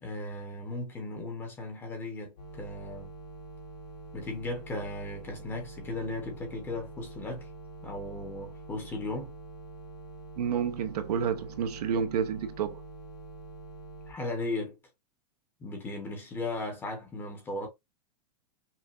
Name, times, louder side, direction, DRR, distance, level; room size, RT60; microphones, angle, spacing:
voice 1, 0.0-3.1 4.1-7.5 7.8-9.3 14.1-14.8 15.6-17.7, left 2 dB, 10° left, 1.0 m, -36 dB
sound 1, 2.4-14.1, right 2 dB, 85° left, 2.3 m, -46 dB
voice 2, 10.4-12.8, right 7 dB, 70° right, 0.9 m, -30 dB
5.7 x 2.5 x 2.6 m
supercardioid pair, 175°, 21 cm